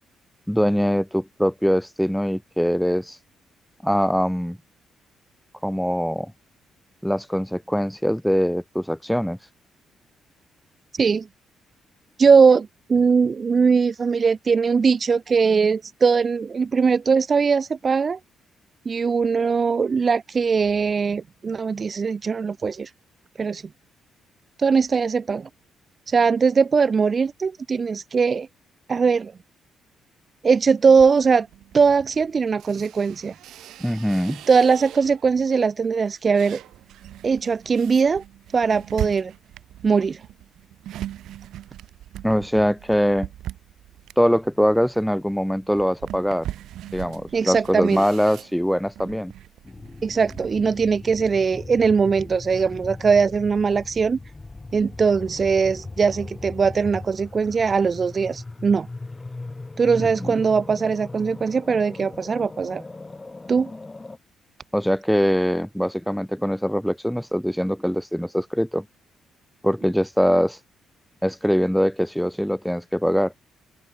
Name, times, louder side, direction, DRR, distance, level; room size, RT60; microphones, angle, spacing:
voice 1, 0.5-3.2 3.8-4.6 5.6-6.3 7.0-9.4 33.8-34.4 42.2-43.3 44.2-46.5 46.9-49.3 60.0-60.3 64.7-68.8 69.6-70.6 71.2-73.3, equal, ahead, 2.4 m, -22 dB
voice 2, 10.9-11.3 12.2-18.2 18.9-22.9 23.4-23.6 24.6-25.5 26.1-28.5 28.9-29.3 30.4-31.5 31.7-33.3 34.5-36.6 37.2-38.2 38.5-39.3 39.8-40.2 47.3-48.0 50.0-54.2 54.7-58.9 59.8-62.8 63.5-63.7, right 5 dB, 40° right, 0.3 m, -20 dB
sound 1, 30.9-35.4 35.8-50.6, right 13 dB, 80° right, 3.9 m, -40 dB
sound 2, 49.6-64.2, left 3 dB, 20° left, 1.7 m, -38 dB
open air
cardioid pair, 90°, 0 cm